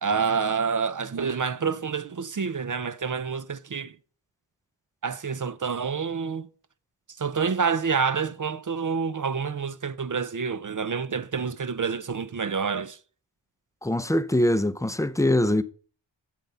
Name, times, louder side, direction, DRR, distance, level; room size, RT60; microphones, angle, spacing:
voice 1, 0.0-3.9 5.0-6.5 7.2-13.0, right 6 dB, 40° right, 0.6 m, -28 dB
voice 2, 13.8-15.6, left 1 dB, 5° left, 0.6 m, -23 dB
7.4 x 7.4 x 5.5 m
cardioid pair, 55°, 48 cm